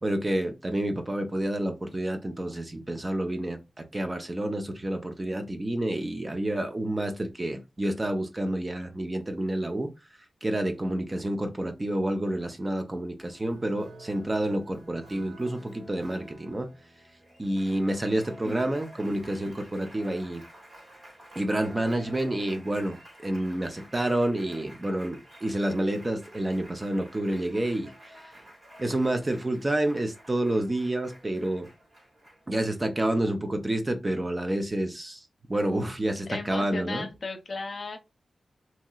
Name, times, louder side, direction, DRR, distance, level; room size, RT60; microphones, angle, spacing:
voice 1, 0.0-9.9 10.4-16.7 17.4-20.4 21.4-27.9 28.2-28.3 28.8-31.7 32.5-35.2 35.5-37.1, right 1 dB, 30° right, 0.6 m, -29 dB
Applause, 13.2-32.9, right 1 dB, 55° right, 1.9 m, -50 dB
voice 2, 36.3-38.0, left 3 dB, 55° left, 0.7 m, -36 dB
2.9 x 2.8 x 2.3 m
cardioid pair, 55°, 0 cm